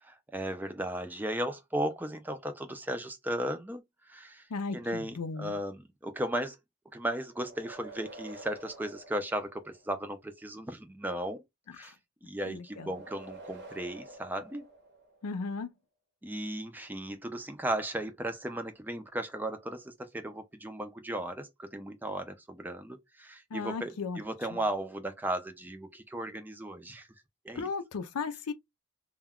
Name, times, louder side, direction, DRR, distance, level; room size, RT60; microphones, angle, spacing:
voice 1, 0.0-4.5 4.7-6.6 6.9-11.4 11.7-12.0 12.2-14.7 16.2-27.1 27.4-27.7, right 1 dB, 10° right, 0.3 m, -36 dB
voice 2, 4.5-5.6 11.7-11.9 12.5-12.9 15.2-15.7 23.5-24.2 27.5-28.5, left 4 dB, 90° left, 0.5 m, -36 dB
sound 1, 7.3-10.1 12.7-15.4, right 2 dB, 50° right, 0.7 m, -49 dB
2.2 x 2.2 x 3.5 m
head